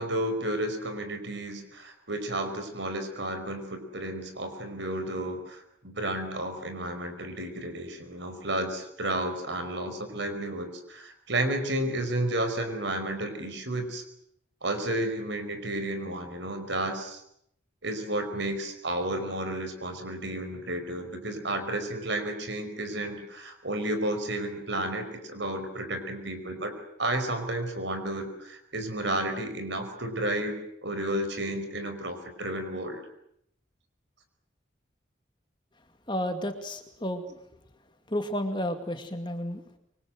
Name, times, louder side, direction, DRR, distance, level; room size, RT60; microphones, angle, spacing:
voice 1, 0.0-14.0 14.6-17.2 17.8-33.0, right 1 dB, 65° right, 8 dB, 5.1 m, -32 dB
voice 2, 36.1-37.2 38.1-39.6, equal, 25° left, 6 dB, 2.3 m, -31 dB
26.0 x 24.5 x 7.9 m, 0.75 s
head